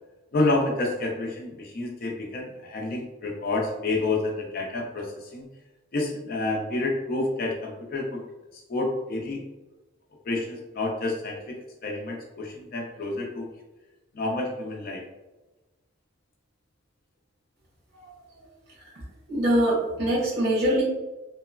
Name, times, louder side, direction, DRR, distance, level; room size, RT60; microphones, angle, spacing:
voice 1, 0.3-5.5 5.9-8.2 8.5-9.4 10.2-11.6 11.8-13.5 14.1-15.0, left 2 dB, 45° left, 0 dB, 0.4 m, -29 dB
voice 2, 19.3-20.8, right 1 dB, 50° right, -5 dB, 0.9 m, -23 dB
2.9 x 2.0 x 2.3 m, 1.1 s
head